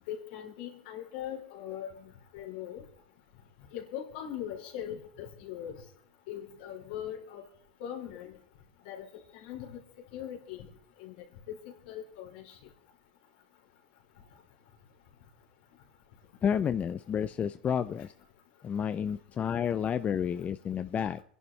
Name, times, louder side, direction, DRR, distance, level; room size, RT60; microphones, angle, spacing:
voice 1, 0.1-2.8 3.7-5.7 6.3-7.4 7.8-8.4 8.9-9.1 9.3-9.8 10.1-10.7 11.0-11.2 11.5-11.6 11.9-12.6, left 10 dB, 70° left, 1 dB, 3.6 m, -40 dB
voice 2, 16.4-18.1 18.6-21.2, left 8 dB, 30° left, 11 dB, 0.6 m, -30 dB
27.5 x 11.0 x 3.3 m, 0.63 s
hypercardioid pair, 95°, 5 cm